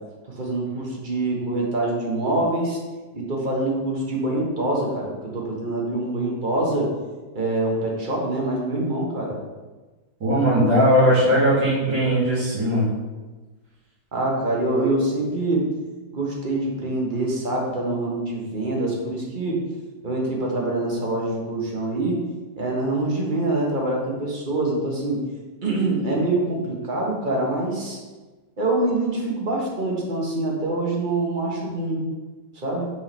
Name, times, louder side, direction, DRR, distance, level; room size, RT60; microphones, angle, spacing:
voice 1, 0.4-2.8 3.1-6.9 7.3-9.4 14.1-15.6 16.1-19.6 20.0-22.2 22.6-25.2 25.6-28.0 28.6-32.0 32.5-32.9, right 2 dB, 30° right, -2 dB, 1.3 m, -25 dB
voice 2, 10.2-12.9, equal, 85° right, -8 dB, 3.0 m, -19 dB
6.0 x 3.7 x 6.0 m, 1.3 s
omnidirectional pair, 1.9 m